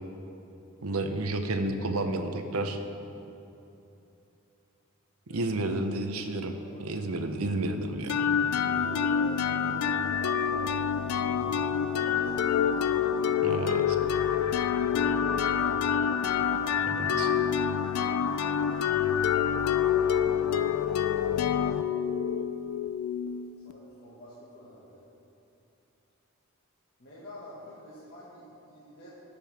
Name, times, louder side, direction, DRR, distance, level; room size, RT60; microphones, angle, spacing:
voice 1, 0.8-2.8 5.3-8.3 13.4-14.0 16.9-17.3, right 2 dB, 80° right, 6 dB, 0.8 m, -31 dB
voice 2, 5.3-5.9 6.5-6.8 8.6-13.2 14.6-16.3 17.1-19.2 20.3-21.8 23.6-25.1 27.0-29.1, equal, 50° left, -9 dB, 1.8 m, -47 dB
sound 1, 8.1-23.7, left 8 dB, 85° left, 0.4 m, -27 dB
18.5 x 6.7 x 3.5 m, 2.9 s
head